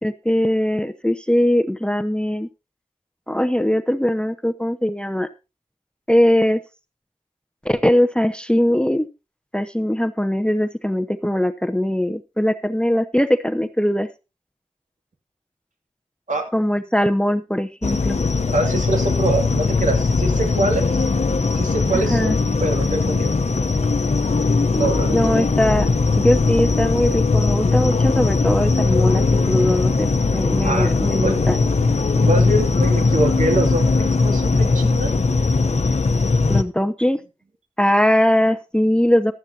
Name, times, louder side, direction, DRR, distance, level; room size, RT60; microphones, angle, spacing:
voice 1, 0.0-2.5 3.3-5.3 6.1-6.6 7.6-9.1 9.5-14.1 16.5-18.2 21.9-22.4 25.1-25.9 26.2-31.6 36.5-37.2 37.8-39.3, equal, 5° left, 12 dB, 0.8 m, -20 dB
sound 1, 17.8-36.6, left 4 dB, 60° left, 0.9 m, -19 dB
voice 2, 18.4-21.0 21.5-22.3 22.6-23.3 24.7-25.5 30.6-30.9 31.2-31.5 32.2-35.1, right 2 dB, 70° right, 3 dB, 2.6 m, -24 dB
15.0 x 11.5 x 2.8 m, 0.28 s
cardioid pair, 45°, 13 cm